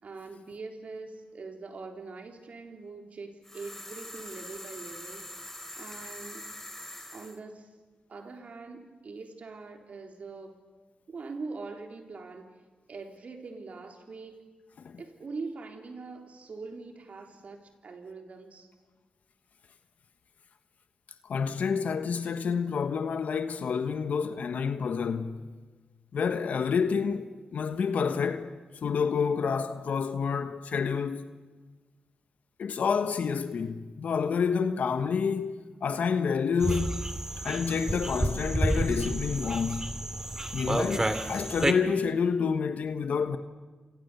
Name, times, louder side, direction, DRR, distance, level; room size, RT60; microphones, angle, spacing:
voice 1, 0.0-5.2 5.8-6.5 7.1-7.7 8.1-10.6 11.1-12.5 12.9-14.5 15.0-18.7, right 4 dB, 65° right, 3.8 m, -42 dB
sound 1, 3.4-7.4, left 1 dB, 15° left, 3.4 m, -43 dB
voice 2, 21.2-25.5 26.1-28.5 28.8-31.3 32.6-37.0 37.4-40.0 40.5-43.4, left 6 dB, 75° left, 1.3 m, -29 dB
sound 2, 36.6-41.7, right 1 dB, 20° right, 2.5 m, -30 dB
29.0 x 27.0 x 6.9 m
cardioid pair, 60°, 3 cm